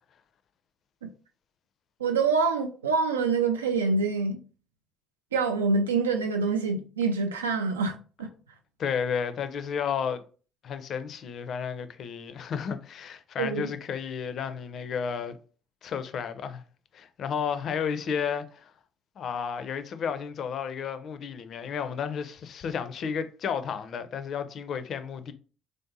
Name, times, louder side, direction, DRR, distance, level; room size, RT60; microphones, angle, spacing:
voice 1, 2.0-4.4 5.3-8.3 13.4-13.7, right 4 dB, 85° right, 0.4 m, -26 dB
voice 2, 8.8-10.2 10.6-15.4 15.8-16.6 16.9-18.7 19.2-25.3, left 7 dB, 50° left, 0.4 m, -32 dB
3.3 x 2.6 x 2.7 m
figure-of-eight pair, 50°, 0 cm